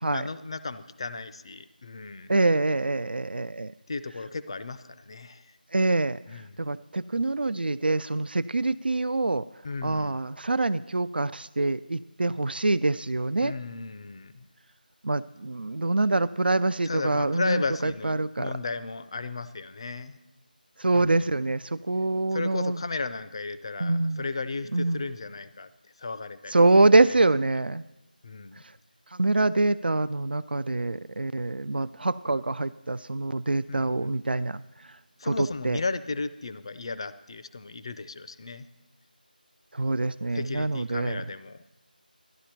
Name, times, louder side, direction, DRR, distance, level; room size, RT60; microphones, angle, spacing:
voice 1, 0.0-2.3 3.9-5.5 6.3-6.7 9.6-10.2 13.4-14.4 16.8-20.2 20.9-21.3 22.3-25.7 26.0-26.6 28.2-28.6 33.7-34.2 35.2-38.7 40.3-41.8, left 3 dB, 35° left, 13 dB, 0.4 m, -35 dB
voice 2, 2.3-3.7 5.7-6.2 6.6-9.4 9.8-13.5 15.0-18.5 20.8-22.8 23.8-24.2 24.7-25.0 26.5-27.8 29.1-34.6 35.2-35.8 39.7-41.2, right 2 dB, 85° right, 15 dB, 0.3 m, -25 dB
12.0 x 11.0 x 4.4 m, 0.98 s
figure-of-eight pair, 165°, 5 cm